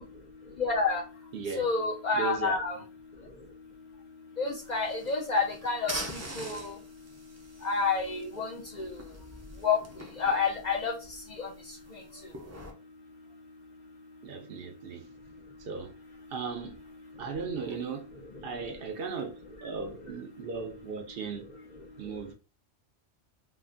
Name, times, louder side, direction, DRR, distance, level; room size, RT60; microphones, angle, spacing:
voice 1, 0.6-1.0 1.6-2.8 4.4-5.9 6.4-6.7 7.6-8.5 8.8-8.9 9.6-9.8 10.2-10.9 11.4-11.5, left 4 dB, 50° left, 0.6 m, -28 dB
voice 2, 1.3-1.7 2.1-2.6 14.2-15.1 15.6-15.9 16.3-16.8 17.2-18.1 18.4-19.3 19.6-21.4 22.0-22.3, right 5 dB, 65° right, 0.7 m, -36 dB
sound 1, 4.5-12.7, right 1 dB, 20° right, 0.4 m, -44 dB
3.0 x 2.4 x 2.4 m
omnidirectional pair, 1.1 m